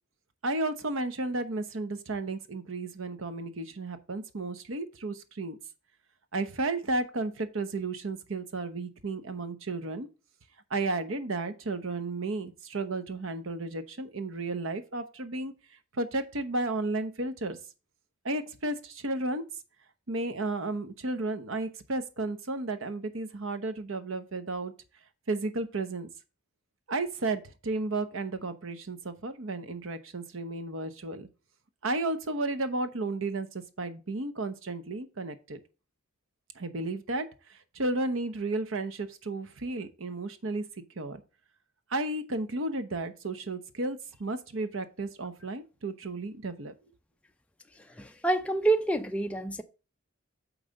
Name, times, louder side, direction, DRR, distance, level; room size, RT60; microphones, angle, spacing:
voice 1, 0.4-5.6 6.3-10.1 10.7-15.5 15.9-17.6 18.2-19.4 20.1-24.7 25.3-26.1 26.9-31.3 31.8-35.6 36.6-40.6 41.0-41.2 41.9-46.7, right 2 dB, 70° right, 0.9 m, -33 dB
voice 2, 48.0-49.6, right 2 dB, 5° left, 0.5 m, -27 dB
8.8 x 3.2 x 6.4 m
head